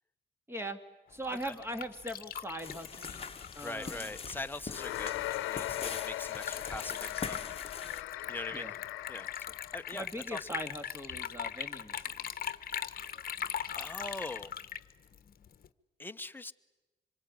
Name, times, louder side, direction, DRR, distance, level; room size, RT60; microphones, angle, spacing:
voice 1, 0.5-0.8 1.1-4.1 8.5-8.7 9.9-12.3, right 1 dB, 10° right, 2.7 m, -41 dB
Liquid, 1.1-15.7, left 8 dB, 45° left, 1.2 m, -41 dB
sound 1, 2.6-8.0, left 5 dB, 30° left, 1.4 m, -43 dB
voice 2, 3.6-5.2 5.5-7.9 8.3-8.7 9.1-9.5 9.7-10.5 13.8-14.5 16.0-16.5, left 2 dB, 10° left, 1.0 m, -42 dB
sound 2, 4.7-10.1, left 15 dB, 90° left, 0.8 m, -39 dB
26.0 x 23.0 x 9.9 m
cardioid pair, 90°, 20 cm